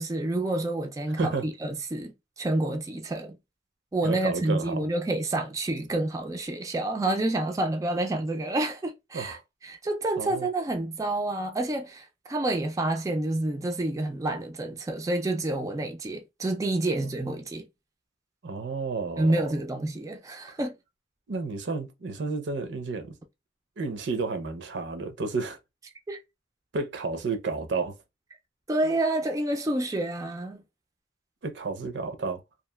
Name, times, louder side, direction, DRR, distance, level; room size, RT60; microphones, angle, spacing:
voice 1, 0.0-3.4 3.9-9.4 9.6-17.7 19.2-20.7 26.1-26.2 28.7-30.6, right 2 dB, 20° right, 0.3 m, -28 dB
voice 2, 4.0-4.9 9.1-9.4 10.2-10.5 17.0-17.1 18.4-19.5 21.3-23.2 23.8-25.6 26.7-27.9 31.4-32.4, right 4 dB, 75° right, 0.6 m, -31 dB
2.9 x 2.4 x 2.2 m
head